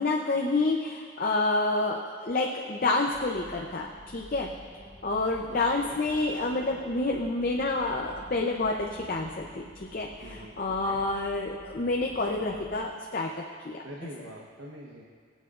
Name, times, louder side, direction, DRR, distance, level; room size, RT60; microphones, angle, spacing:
voice 1, 0.0-4.5 5.0-14.1, left 2 dB, 45° left, 0 dB, 0.6 m, -29 dB
sound 1, 3.1-12.8, equal, 15° right, 1.5 m, -50 dB
voice 2, 5.5-6.0 10.2-11.0 13.8-15.0, right 1 dB, 80° right, -3 dB, 1.1 m, -45 dB
20.0 x 8.1 x 2.5 m, 2.1 s
head